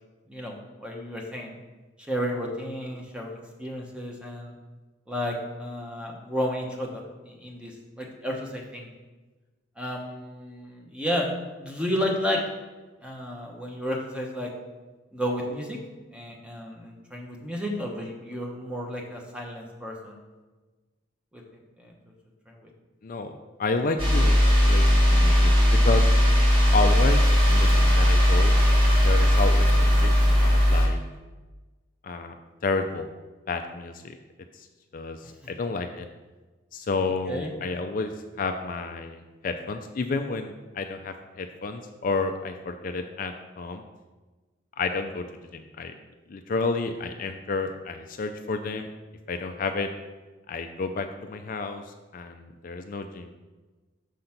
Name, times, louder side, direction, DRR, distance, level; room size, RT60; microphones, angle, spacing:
voice 1, 0.3-1.5 2.1-4.5 5.1-8.9 9.8-11.3 11.6-12.4 13.0-14.5 15.1-15.8 16.1-20.2 21.3-21.9 22.5-22.7 37.3-37.5, equal, 5° right, 0 dB, 1.0 m, -32 dB
voice 2, 23.0-23.3 23.6-25.5 25.8-26.1 26.7-28.6 29.0-30.1 30.4-31.0 32.0-32.3 32.6-33.1 33.5-34.2 34.5-34.7 34.9-36.1 36.7-38.1 38.4-43.8 44.8-45.3 45.5-45.9 46.3-48.9 49.3-49.9 50.5-51.8 52.1-53.3, left 3 dB, 45° left, 6 dB, 0.4 m, -30 dB
sound 1, 24.0-30.9, equal, 30° right, 1.9 m, -18 dB
6.5 x 4.0 x 5.8 m, 1.2 s
head